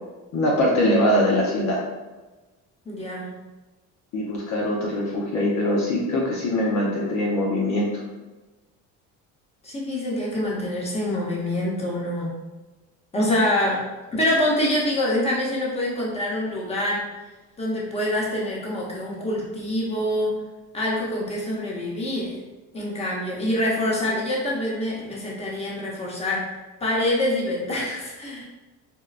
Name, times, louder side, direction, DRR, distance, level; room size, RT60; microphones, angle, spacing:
voice 1, 0.3-1.8 4.1-7.9, left 1 dB, 50° left, -3 dB, 0.7 m, -22 dB
voice 2, 2.8-3.3 9.6-12.4 13.1-13.8 14.1-17.0 17.6-20.3 20.7-22.4 22.7-26.4 26.8-28.4, left 1 dB, 15° left, -4 dB, 0.9 m, -25 dB
4.5 x 2.1 x 2.4 m, 1.2 s
cardioid pair, 110°, 36 cm